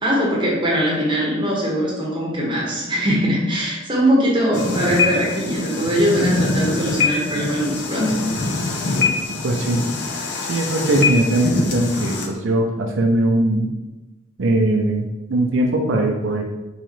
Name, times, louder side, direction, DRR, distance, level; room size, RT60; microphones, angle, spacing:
voice 1, 0.0-8.2, equal, 25° right, -4 dB, 0.9 m, -21 dB
sound 1, 4.5-12.3, left 3 dB, 60° left, 0.6 m, -24 dB
voice 2, 9.4-9.8 10.5-13.7 14.4-16.4, right 1 dB, 90° right, 1 dB, 0.5 m, -20 dB
3.7 x 3.1 x 3.1 m, 1.1 s
head